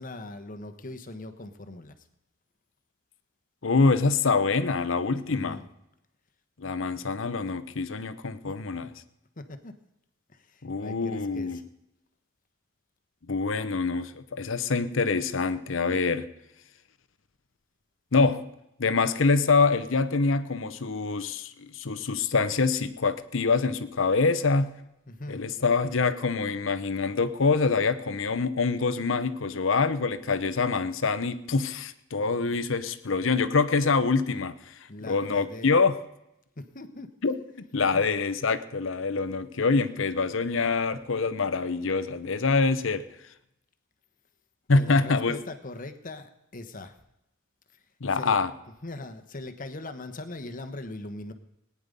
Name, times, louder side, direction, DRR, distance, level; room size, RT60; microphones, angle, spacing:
voice 1, 0.0-1.9 5.3-5.7 6.9-7.4 8.4-8.5 8.8-8.9 9.4-9.7 10.3-11.6 25.1-25.4 32.2-32.6 34.9-35.7 36.6-37.1 37.9-38.0 44.7-47.0 48.1-48.4 48.8-51.3, left 2 dB, 40° left, 1.2 m, -41 dB
voice 2, 3.6-5.6 6.6-8.9 10.6-11.6 13.3-16.3 18.1-18.4 18.8-24.7 25.3-34.7 35.0-36.0 37.2-37.4 37.7-43.1 44.7-45.4 48.0-48.5, left 4 dB, 65° left, 0.8 m, -25 dB
19.0 x 9.8 x 5.4 m
head